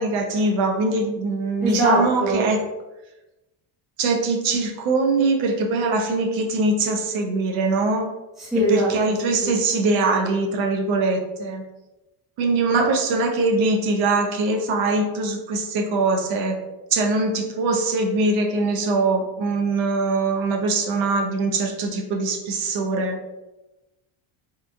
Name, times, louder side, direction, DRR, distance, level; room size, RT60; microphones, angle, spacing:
voice 1, 0.0-2.6 4.0-8.1 8.7-11.6 12.4-16.6 16.9-23.2, right 3 dB, 70° right, 2 dB, 0.6 m, -22 dB
voice 2, 1.6-2.5 8.4-8.9 9.4-9.6, right 1 dB, ahead, -7 dB, 0.4 m, -22 dB
2.9 x 2.3 x 2.5 m, 1.0 s
cardioid pair, 175°, 48 cm